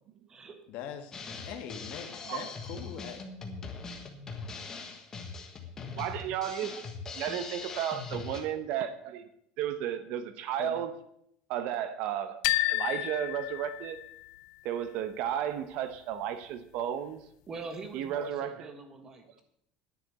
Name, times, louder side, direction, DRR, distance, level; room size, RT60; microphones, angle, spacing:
voice 1, 0.7-3.3 10.6-10.8, left 8 dB, 55° left, 8 dB, 1.4 m, -42 dB
Drum kit, 1.1-8.4, left 4 dB, 20° left, 1.4 m, -41 dB
voice 2, 5.9-6.8 7.1-9.3 9.6-10.9 11.5-12.4 12.7-14.0 14.6-17.2 17.9-18.7, right 10 dB, 55° right, 12 dB, 0.9 m, -33 dB
sound 1, 12.4-14.4, left 19 dB, 85° left, 0.6 m, -31 dB
voice 3, 17.5-19.4, right 4 dB, 20° right, 7 dB, 1.5 m, -43 dB
10.0 x 7.1 x 8.0 m, 0.74 s
cardioid pair, 170°, 3 cm